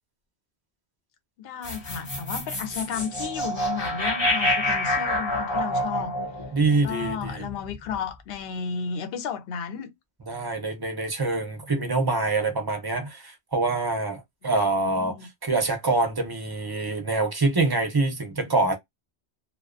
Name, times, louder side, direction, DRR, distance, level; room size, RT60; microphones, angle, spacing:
voice 1, 1.4-6.1 6.7-9.9 14.8-15.3, left 7 dB, 70° left, 0.8 m, -33 dB
sound 1, 1.6-7.9, left 1 dB, 30° left, 0.9 m, -28 dB
voice 2, 6.5-7.4 10.3-15.2 15.4-18.7, right 3 dB, 30° right, 0.5 m, -25 dB
2.3 x 2.2 x 2.4 m
omnidirectional pair, 1.1 m